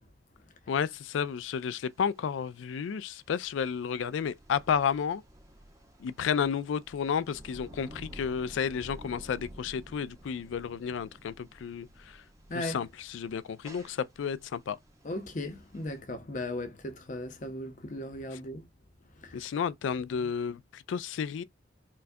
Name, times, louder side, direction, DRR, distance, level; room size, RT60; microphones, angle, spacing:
voice 1, 0.7-5.2 6.0-12.2 12.5-14.8 18.3-18.4 19.3-21.4, left 7 dB, 85° left, 0.3 m, -32 dB
sound 1, 0.7-16.0, right 1 dB, 15° right, 0.8 m, -52 dB
voice 2, 15.0-18.6 19.2-19.4, left 1 dB, 40° left, 0.7 m, -37 dB
4.5 x 2.2 x 2.6 m
head